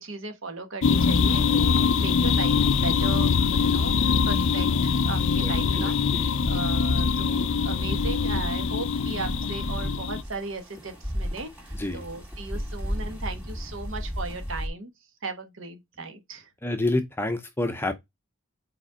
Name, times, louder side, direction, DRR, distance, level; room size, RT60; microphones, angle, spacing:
voice 1, 0.0-5.9 6.5-14.9 15.2-16.5, right 3 dB, 65° right, 1.3 m, -37 dB
sound 1, 0.8-10.2, left 5 dB, 60° left, 0.5 m, -23 dB
sound 2, 1.0-14.7, equal, 5° right, 2.3 m, -37 dB
voice 2, 5.2-6.3 11.7-12.0 16.6-17.9, left 2 dB, 10° left, 0.6 m, -29 dB
5.0 x 4.3 x 5.0 m
head